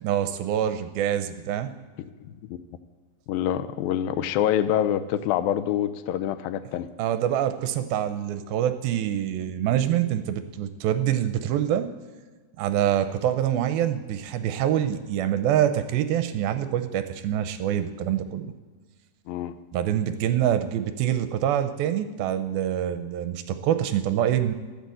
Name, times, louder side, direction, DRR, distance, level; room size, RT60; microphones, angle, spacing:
voice 1, 0.0-1.7 7.0-11.9 12.6-18.5 19.7-24.5, right 10 dB, 80° right, 9 dB, 2.2 m, -25 dB
voice 2, 2.2-2.6 3.3-6.9 19.3-19.5, left 11 dB, 80° left, 13 dB, 2.1 m, -26 dB
14.0 x 10.5 x 7.7 m, 1.4 s
omnidirectional pair, 4.9 m